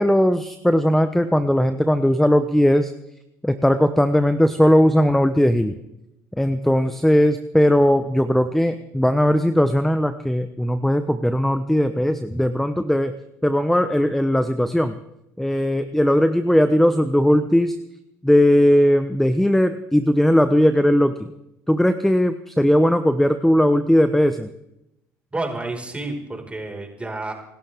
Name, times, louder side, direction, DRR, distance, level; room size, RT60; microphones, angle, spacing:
voice 1, 0.0-2.9 3.4-5.8 6.4-13.1 13.4-14.9 15.4-17.8 18.2-21.3 21.7-24.5, equal, 5° left, 10 dB, 1.0 m, -18 dB
voice 2, 25.3-27.3, right 2 dB, 15° right, 1 dB, 5.2 m, -30 dB
27.0 x 12.5 x 3.6 m, 0.85 s
supercardioid pair, 70°, 7 cm